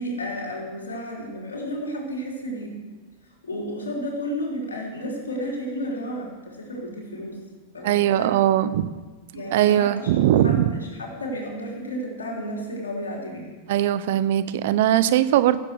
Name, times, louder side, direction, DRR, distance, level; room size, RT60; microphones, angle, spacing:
voice 1, 0.0-2.8 3.4-7.4 7.7-8.3 9.3-10.1 10.4-13.5, equal, 90° left, -2 dB, 3.3 m, -32 dB
voice 2, 7.8-8.9 9.5-10.7 13.7-15.6, right 12 dB, 65° right, 15 dB, 0.6 m, -20 dB
15.0 x 7.6 x 6.6 m, 1.3 s
hypercardioid pair, 100°, 0 cm